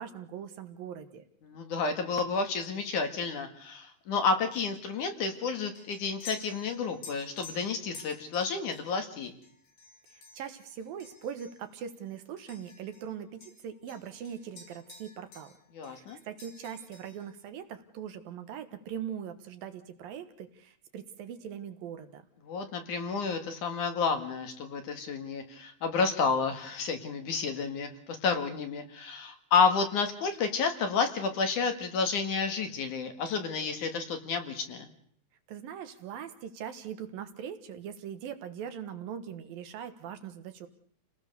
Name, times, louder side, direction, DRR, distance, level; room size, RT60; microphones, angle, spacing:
voice 1, 0.0-1.2 10.1-15.6 15.8-22.3 35.5-40.7, right 8 dB, 70° right, 9 dB, 2.9 m, -41 dB
voice 2, 1.4-9.3 15.7-16.2 22.5-34.9, left 5 dB, 55° left, 6 dB, 3.1 m, -30 dB
sound 1, 4.5-13.1 13.4-15.6 15.8-17.3, left 3 dB, 80° left, 7.3 m, -51 dB
29.0 x 19.0 x 6.8 m, 0.62 s
omnidirectional pair, 4.5 m